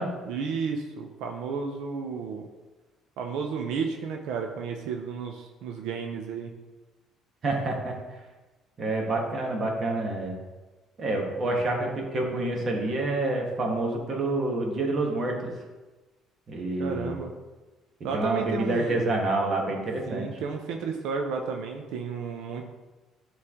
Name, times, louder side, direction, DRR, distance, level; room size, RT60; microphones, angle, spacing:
voice 1, 0.2-2.5 3.2-6.5 16.8-17.3 18.0-19.0 20.1-22.6, right 5 dB, 80° right, 3 dB, 0.6 m, -32 dB
voice 2, 7.4-7.9 8.8-10.4 11.0-15.5 16.5-17.2 18.1-20.4, right 2 dB, 35° right, 1 dB, 1.2 m, -28 dB
9.5 x 3.2 x 3.6 m, 1.2 s
cardioid pair, 150°, 0 cm